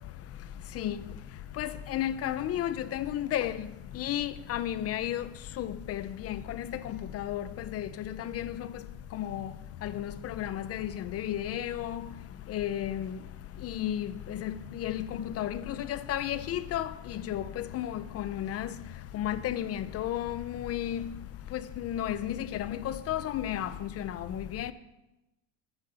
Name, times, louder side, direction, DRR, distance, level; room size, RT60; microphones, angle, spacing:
voice 1, 1.6-3.7 4.0-5.2 5.6-8.7 9.1-9.5 9.8-12.0 12.5-13.1 13.6-16.9 17.3-18.7 19.1-21.0 21.5-24.7, left 11 dB, 35° left, 0.6 m, -33 dB
11.5 x 8.8 x 6.8 m
cardioid pair, 145°, 43 cm